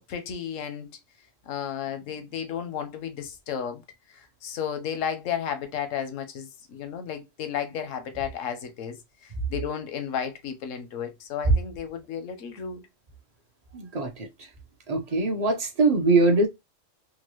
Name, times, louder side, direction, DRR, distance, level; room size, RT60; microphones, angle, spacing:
voice 1, 0.1-0.9 1.5-3.8 4.4-9.0 9.5-12.8, left 8 dB, 85° left, 1.1 m, -33 dB
voice 2, 13.7-14.5 14.9-16.5, right 3 dB, 40° right, 0.6 m, -23 dB
3.8 x 2.2 x 3.0 m
omnidirectional pair, 1.3 m